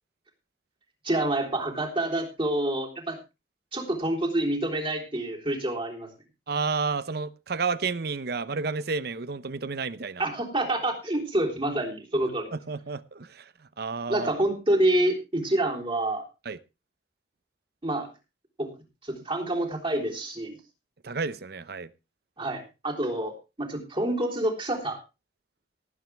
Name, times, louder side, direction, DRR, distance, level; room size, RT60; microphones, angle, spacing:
voice 1, 1.0-3.2 3.7-6.1 10.2-12.5 14.1-16.2 17.8-18.1 18.6-18.7 19.0-20.6 22.4-23.3 23.6-25.0, right 1 dB, 30° right, 3.7 m, -27 dB
voice 2, 6.5-10.3 12.5-13.5 13.8-14.3 16.4-16.6 21.0-21.9, right 4 dB, 60° right, 0.7 m, -31 dB
19.0 x 9.3 x 3.4 m
head